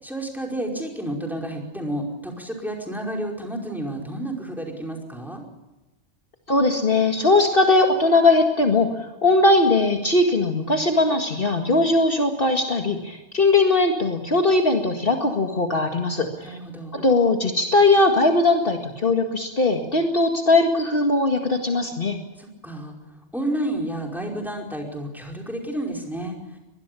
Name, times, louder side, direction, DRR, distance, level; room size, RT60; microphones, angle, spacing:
voice 1, 0.0-5.4 16.4-17.0 22.4-22.9 23.3-26.6, right 1 dB, ahead, 1 dB, 5.1 m, -30 dB
voice 2, 6.5-16.6 16.9-22.2, left 2 dB, 50° left, 3 dB, 2.1 m, -20 dB
24.0 x 20.5 x 7.0 m, 1.1 s
omnidirectional pair, 1.2 m